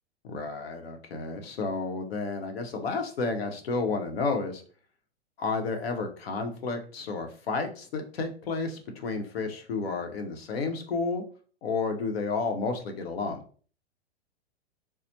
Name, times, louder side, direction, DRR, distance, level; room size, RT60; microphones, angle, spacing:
voice 1, 0.2-4.6 5.4-11.2 11.6-13.4, left 4 dB, 65° left, 5 dB, 0.9 m, -31 dB
4.0 x 2.0 x 2.8 m, 0.42 s
figure-of-eight pair, 110°, 33 cm